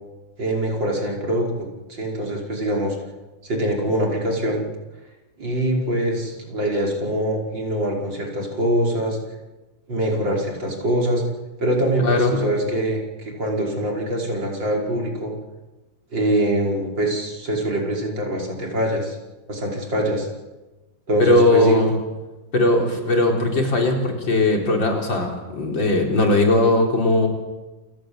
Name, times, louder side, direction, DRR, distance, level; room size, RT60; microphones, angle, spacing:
voice 1, 0.4-3.0 3.4-4.6 5.4-9.2 9.9-11.2 11.6-15.3 16.1-19.2 19.5-20.3 21.1-21.9, right 1 dB, 75° right, 0 dB, 6.1 m, -23 dB
voice 2, 12.0-12.4 21.2-21.9 22.5-27.3, left 2 dB, 80° left, 1 dB, 5.1 m, -19 dB
28.5 x 17.0 x 8.0 m, 1.1 s
omnidirectional pair, 2.0 m